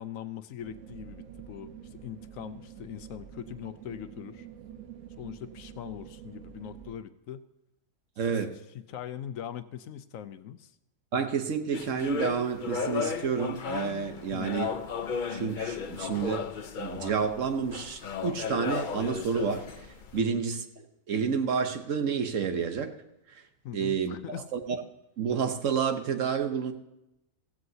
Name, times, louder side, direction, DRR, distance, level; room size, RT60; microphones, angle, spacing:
voice 1, 0.0-4.5 5.2-7.4 8.3-8.4 8.7-10.7 14.3-14.6 20.1-20.4 23.6-24.5, left 10 dB, 75° left, 12 dB, 1.0 m, -41 dB
sound 1, 0.6-6.9, right 9 dB, 80° right, 1.4 m, -47 dB
voice 2, 8.2-8.5 11.1-14.7 15.3-16.4 16.8-20.6 21.1-22.9 23.3-23.4 23.7-24.8 25.2-26.7, right 6 dB, 65° right, 7 dB, 1.3 m, -30 dB
sound 2, 11.7-20.2, left 5 dB, 45° left, 0.7 m, -35 dB
15.5 x 15.0 x 2.8 m, 0.89 s
omnidirectional pair, 1.5 m